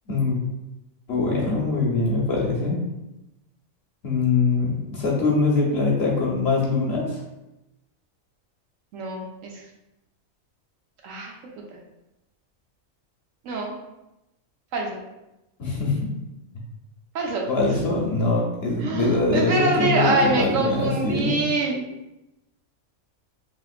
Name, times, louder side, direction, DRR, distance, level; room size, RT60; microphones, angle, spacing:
voice 1, 0.1-0.4 1.1-2.8 4.0-7.2 15.6-16.1 17.5-21.4, left 3 dB, 60° left, -3 dB, 0.8 m, -23 dB
voice 2, 8.9-9.7 11.0-11.3 11.7-11.8 13.4-13.7 14.7-15.0 17.1-17.5 18.8-21.9, right 2 dB, 75° right, 0 dB, 1.0 m, -25 dB
3.1 x 2.9 x 2.4 m, 0.94 s
omnidirectional pair, 1.4 m